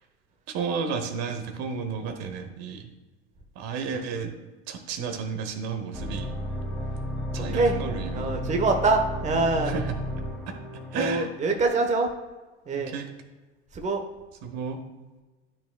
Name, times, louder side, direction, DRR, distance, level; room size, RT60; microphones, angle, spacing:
voice 1, 0.5-2.9 3.5-4.3 4.7-6.3 7.3-8.4 9.7-9.8 10.5-10.6 10.9-11.3 12.9-13.0 14.4-14.8, right 5 dB, 45° right, 6 dB, 1.2 m, -32 dB
sound 1, 5.9-11.2, equal, ahead, 1.5 m, -33 dB
voice 2, 8.1-9.7 10.9-12.1 12.7-12.9 13.7-14.0, right 3 dB, 20° right, 4 dB, 1.1 m, -24 dB
12.0 x 6.1 x 2.3 m, 1.2 s
hypercardioid pair, 85°, 35 cm